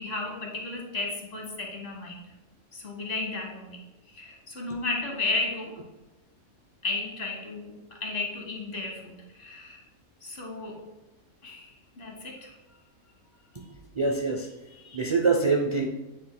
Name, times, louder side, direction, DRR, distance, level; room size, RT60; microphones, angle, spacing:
voice 1, 0.0-2.2 2.7-3.8 4.1-5.8 6.8-9.8 10.2-10.8 11.4-12.6, left 3 dB, 45° left, 0 dB, 1.7 m, -34 dB
voice 2, 13.5-15.9, right 4 dB, 50° right, 2 dB, 0.3 m, -26 dB
8.9 x 7.3 x 2.2 m, 1.0 s
omnidirectional pair, 1.5 m